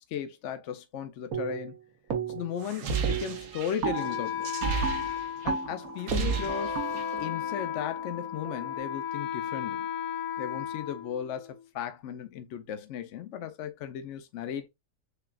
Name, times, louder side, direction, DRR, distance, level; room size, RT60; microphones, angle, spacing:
voice 1, 0.1-1.8 2.3-4.5 5.4-6.8 7.2-9.9 10.4-14.7, left 9 dB, 65° left, 0.9 m, -36 dB
sound 1, 1.3-1.8 2.1-2.6 2.9-8.7, right 6 dB, 90° right, 1.4 m, -35 dB
sound 2, 2.6-5.5 5.8-7.2, right 6 dB, 70° right, 1.2 m, -33 dB
Wind instrument woodwind instrument, 3.9-11.6, left 10 dB, 35° left, 0.5 m, -35 dB
6.7 x 2.3 x 2.3 m
omnidirectional pair, 1.4 m